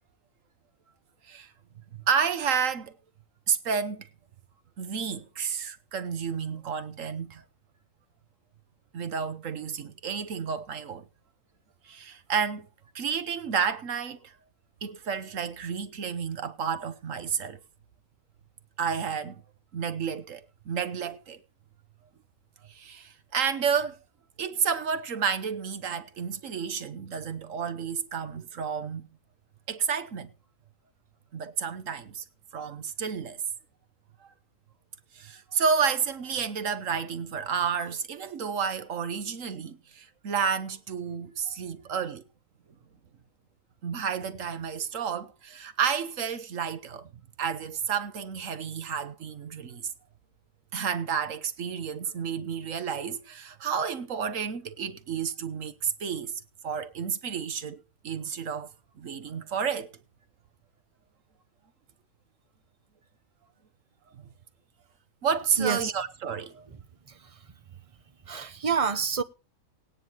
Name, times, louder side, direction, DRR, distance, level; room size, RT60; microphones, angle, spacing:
voice 1, 2.1-2.9 3.5-4.1 4.8-7.4 8.9-11.0 11.8-12.7 12.9-14.3 14.8-17.6 18.8-19.4 19.7-21.4 22.7-24.0 24.4-29.1 29.7-30.3 31.3-32.2 32.5-33.4 34.2-34.3 35.1-42.2 43.8-47.1 47.4-49.9 50.7-58.7 59.0-59.9 64.1-64.2 65.2-66.7, right 6 dB, 70° right, 1.4 m, -31 dB
voice 2, 65.6-65.9 66.7-66.8 67.1-67.5 68.3-69.2, right 6 dB, 30° right, 0.9 m, -29 dB
19.0 x 9.6 x 3.0 m
omnidirectional pair, 1.4 m